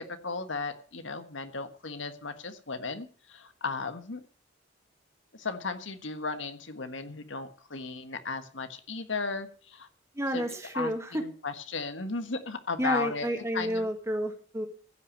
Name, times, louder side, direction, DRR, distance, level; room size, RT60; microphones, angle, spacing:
voice 1, 0.0-4.2 5.3-9.9 10.3-10.4 10.7-13.3 13.5-13.9, left 4 dB, 90° left, 9 dB, 1.5 m, -35 dB
voice 2, 10.1-11.2 12.8-14.7, equal, 15° right, 5 dB, 2.1 m, -30 dB
15.5 x 6.1 x 8.4 m, 0.43 s
head